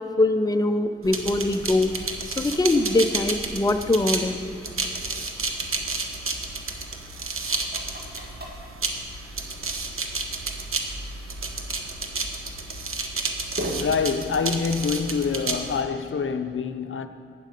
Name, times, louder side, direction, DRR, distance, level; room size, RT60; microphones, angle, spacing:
voice 1, 0.0-1.9 2.4-4.4, left 2 dB, 20° left, 0.5 m, -22 dB
sound 1, 0.6-16.4, equal, 45° right, 1.8 m, -44 dB
sound 2, 1.0-15.8, right 3 dB, 85° right, 1.0 m, -31 dB
voice 2, 13.8-17.1, left 5 dB, 70° left, 0.6 m, -26 dB
12.0 x 8.4 x 5.2 m
wide cardioid pair, 80°, 21 cm